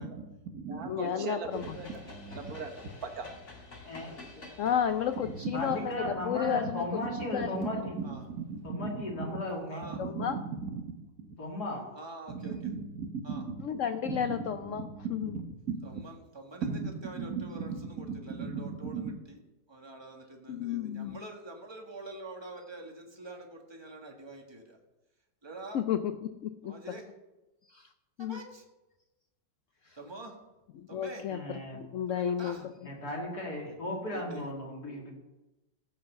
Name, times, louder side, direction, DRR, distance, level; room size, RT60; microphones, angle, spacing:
voice 1, 0.0-3.3 5.2-5.5 5.9-6.0 6.4-6.6 7.0-7.9 8.2-9.3 9.8-11.3 12.3-13.6 14.0-16.0 16.6-19.2, right 5 dB, 55° right, 5 dB, 1.6 m, -38 dB
voice 2, 0.9-1.6 4.6-7.8 10.0-10.4 13.6-15.4 20.5-21.2 25.7-26.7 27.7-27.9 28.2-28.4 29.8-30.0 30.7-32.6, left 9 dB, 85° left, 10 dB, 0.6 m, -32 dB
sound 1, 1.5-7.8, left 2 dB, 40° left, 2.2 m, -50 dB
voice 3, 3.8-4.5 5.5-8.0 8.6-9.9 11.4-11.9 31.3-31.8 32.8-35.1, left 1 dB, 60° left, -2 dB, 3.2 m, -36 dB
voice 4, 9.7-10.0 11.9-12.5 13.2-13.5 15.8-19.4 19.7-24.8 25.4-25.8 26.6-27.0 28.2-28.6 29.9-30.4 30.9-31.2 32.1-32.6 34.1-34.5, right 2 dB, 15° right, 2 dB, 1.5 m, -46 dB
15.5 x 5.6 x 6.6 m, 1.0 s
omnidirectional pair, 1.9 m